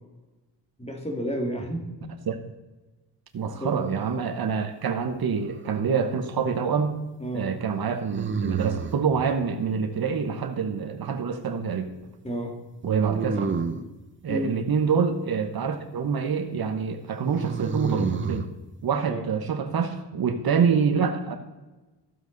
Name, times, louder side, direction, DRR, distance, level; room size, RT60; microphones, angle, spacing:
voice 1, 0.8-1.9 3.6-3.8 7.2-7.5 12.2-12.6 14.3-14.6 19.1-19.2, equal, 15° left, 2 dB, 2.3 m, -31 dB
voice 2, 3.3-7.0 7.3-11.9 12.8-13.5 14.2-18.5 18.8-21.4, right 6 dB, 60° right, 7 dB, 1.1 m, -26 dB
sound 1, 5.4-6.1 8.1-9.1 12.8-13.9 17.2-18.5, right 5 dB, 30° right, 0.9 m, -29 dB
14.5 x 8.0 x 4.0 m, 1.1 s
cardioid pair, 95°, 41 cm